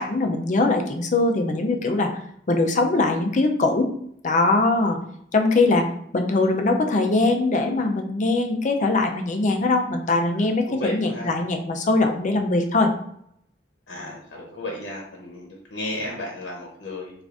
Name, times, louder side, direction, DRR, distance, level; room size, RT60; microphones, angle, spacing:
voice 1, 0.0-2.1 2.5-3.9 4.2-5.0 5.3-12.9, left 2 dB, 45° left, 4 dB, 0.5 m, -21 dB
voice 2, 10.7-11.3 13.9-17.1, left 1 dB, 75° left, -2 dB, 0.8 m, -33 dB
3.7 x 2.5 x 3.4 m, 0.68 s
head